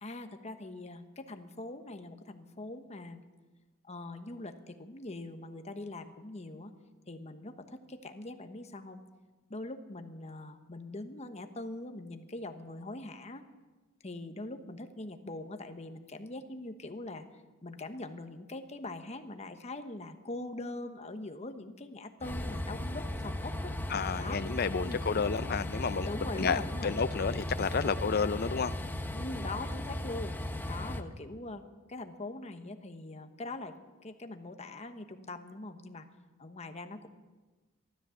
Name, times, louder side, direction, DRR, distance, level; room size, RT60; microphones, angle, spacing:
voice 1, 0.0-3.2 3.8-6.7 7.1-9.0 9.5-13.4 14.0-23.7 24.2-24.4 24.8-25.0 26.0-26.9 29.1-30.4 30.6-31.6 31.9-33.8 34.0-36.1 36.4-37.1, left 2 dB, 35° left, 7 dB, 1.2 m, -42 dB
Train, 22.2-31.0, left 1 dB, 10° left, 0.9 m, -36 dB
voice 2, 23.9-26.1 26.4-28.7, left 5 dB, 50° left, 14 dB, 0.6 m, -31 dB
15.0 x 13.0 x 7.1 m, 1.2 s
head